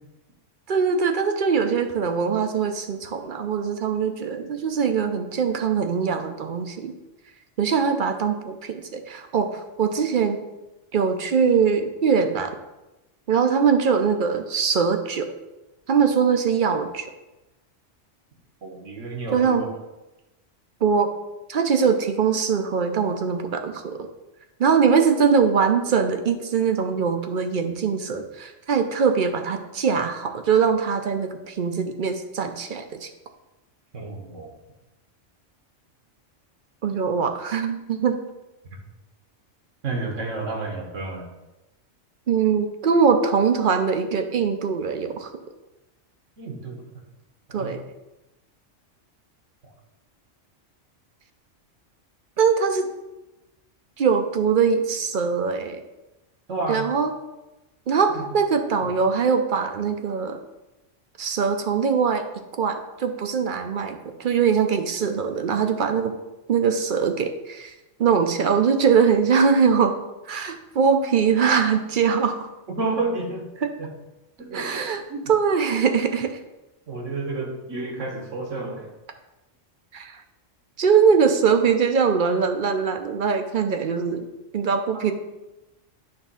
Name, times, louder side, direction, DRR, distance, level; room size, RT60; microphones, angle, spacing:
voice 1, 0.7-6.9 7.6-10.4 10.9-12.5 13.3-15.3 15.9-17.1 19.3-19.7 20.8-21.1 21.5-24.1 24.6-33.1 36.8-38.2 42.3-45.3 47.5-47.8 52.4-52.9 54.0-55.8 56.7-57.1 57.9-60.4 61.2-62.3 62.6-66.1 66.5-67.7 68.0-70.0 70.3-72.5 73.6-73.7 74.5-75.0 75.3-76.4 79.9-80.2 80.8-84.3 84.5-85.1, right 6 dB, 50° right, 7 dB, 0.6 m, -22 dB
voice 2, 18.6-19.7 33.9-34.5 39.8-41.2 46.4-46.8 47.5-47.7 56.5-56.9 58.1-58.3 58.8-58.9 72.8-73.5 73.8-73.9 74.4-75.3 76.9-78.9 84.9-85.1, right 3 dB, 75° right, 1 dB, 1.7 m, -31 dB
9.0 x 3.5 x 5.5 m, 1.0 s
omnidirectional pair, 1.3 m